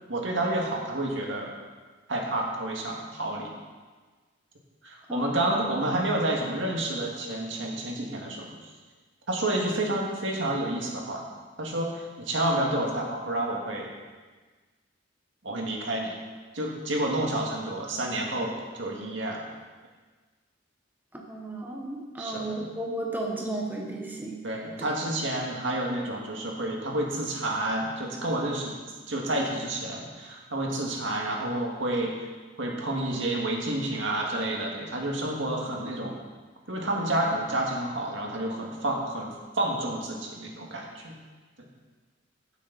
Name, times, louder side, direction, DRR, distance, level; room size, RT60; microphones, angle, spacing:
voice 1, 0.1-1.5 2.1-3.5 4.8-8.5 9.3-11.2 11.6-13.9 15.4-16.1 16.5-19.5 22.2-22.6 24.4-28.7 29.1-32.1 32.6-36.2 36.7-41.1, right 1 dB, 70° right, -1 dB, 2.1 m, -29 dB
voice 2, 5.1-5.5 21.1-24.4, right 1 dB, 10° right, -1 dB, 1.3 m, -34 dB
15.0 x 8.3 x 4.2 m, 1.4 s
head